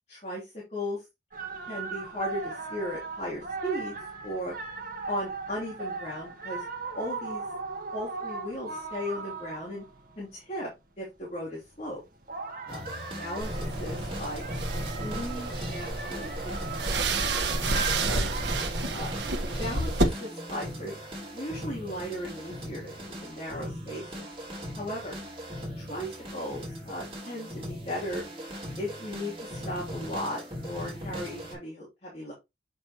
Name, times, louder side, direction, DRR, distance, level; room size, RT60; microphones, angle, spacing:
voice 1, 0.1-1.0 1.6-3.9 4.2-4.5 5.1-6.6 6.9-7.4 7.9-9.8 10.2-10.7 11.0-12.0 12.7-12.8 13.2-14.4 15.0-16.6 16.9-17.1 18.0-18.3 18.9-19.1 19.6-21.0 21.3-24.3 24.7-25.2 25.8-28.2 28.8-32.3, left 1 dB, 35° left, -5 dB, 2.9 m, -36 dB
sound 1, 1.3-10.2 11.8-18.6, right 4 dB, 45° right, 1.4 m, -38 dB
sound 2, 12.7-31.5, equal, 30° right, 3.4 m, -39 dB
sound 3, 13.4-20.0, right 3 dB, 65° right, 1.3 m, -30 dB
7.7 x 5.4 x 3.0 m, 0.22 s
head